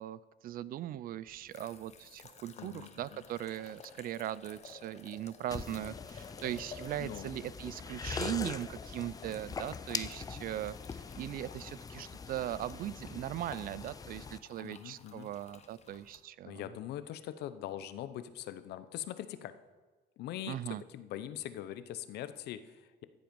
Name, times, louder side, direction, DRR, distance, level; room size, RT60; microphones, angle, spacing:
voice 1, 0.0-16.7 20.5-20.8, right 12 dB, 60° right, 18 dB, 0.4 m, -39 dB
sound 1, 1.3-16.2, left 6 dB, 40° left, 1.1 m, -54 dB
voice 2, 2.6-3.2 7.0-7.3 14.6-15.3 16.4-19.5 20.2-20.6 20.9-23.0, left 12 dB, 75° left, 13 dB, 0.8 m, -42 dB
sound 2, 5.5-14.4, left 5 dB, 20° left, 0.5 m, -43 dB
13.5 x 7.8 x 5.3 m, 1.3 s
cardioid pair, 110°, 17 cm